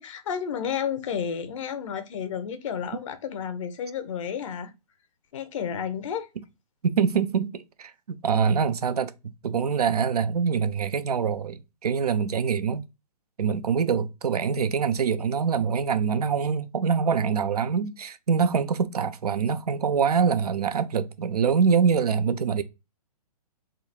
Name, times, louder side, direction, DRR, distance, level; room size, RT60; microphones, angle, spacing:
voice 1, 0.0-4.7 5.3-6.3, left 7 dB, 55° left, 0.9 m, -31 dB
voice 2, 6.8-12.8 13.4-22.6, right 6 dB, 75° right, 0.7 m, -24 dB
3.7 x 2.4 x 4.4 m
hypercardioid pair, 130°, 20 cm